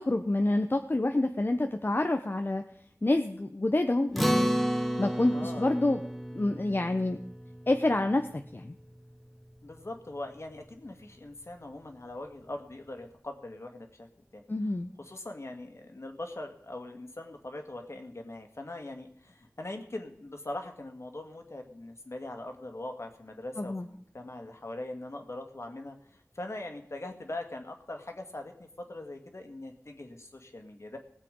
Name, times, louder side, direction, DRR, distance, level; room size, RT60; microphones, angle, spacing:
voice 1, 0.0-2.6 3.0-4.5 5.0-6.0 6.3-7.2 7.7-8.7 14.5-14.9 23.6-23.9, left 2 dB, 40° left, 6 dB, 0.8 m, -28 dB
Acoustic guitar, 4.2-8.9, equal, ahead, 1.1 m, -32 dB
voice 2, 5.3-5.7 9.6-14.1 14.3-14.4 15.0-31.0, left 2 dB, 60° left, 5 dB, 2.0 m, -41 dB
19.0 x 7.6 x 5.3 m, 0.68 s
wide cardioid pair, 50°, 5 cm